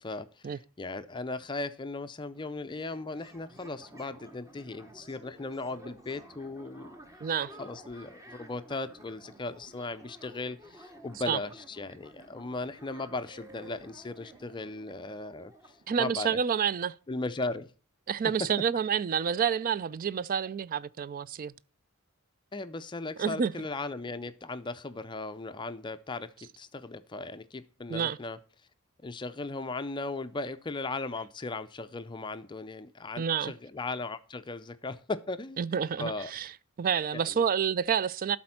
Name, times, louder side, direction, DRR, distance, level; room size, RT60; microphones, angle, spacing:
voice 1, 0.0-7.0 7.6-16.4 17.1-17.7 18.4-18.5 22.5-28.4 29.0-35.6 36.0-36.3 37.1-37.5, left 3 dB, 20° left, 0.4 m, -37 dB
sound 1, 2.2-16.8, right 1 dB, 15° right, 1.1 m, -53 dB
voice 2, 7.2-7.5 11.3-11.4 15.9-16.9 18.1-21.5 23.2-23.5 27.9-28.2 33.2-33.5 35.6-36.5 36.8-38.4, right 7 dB, 40° right, 0.3 m, -28 dB
12.0 x 4.3 x 5.7 m
head